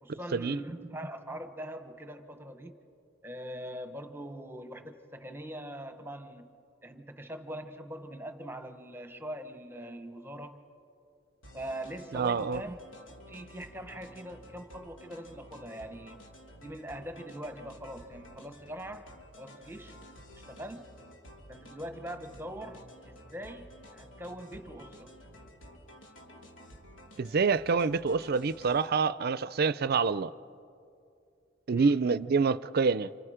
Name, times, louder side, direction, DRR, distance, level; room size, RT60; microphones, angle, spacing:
voice 1, 0.0-2.8 3.2-6.5 6.8-10.6 11.5-12.8 13.3-16.2 16.6-19.0 19.4-20.0 20.5-20.9 21.5-25.1 31.7-32.0, right 1 dB, 10° right, 1.1 m, -42 dB
sound 1, 11.4-28.9, equal, 85° left, 2.9 m, -52 dB
voice 2, 12.1-12.6 27.2-30.3 31.7-33.1, right 5 dB, 55° right, 0.5 m, -27 dB
29.5 x 27.0 x 5.0 m
head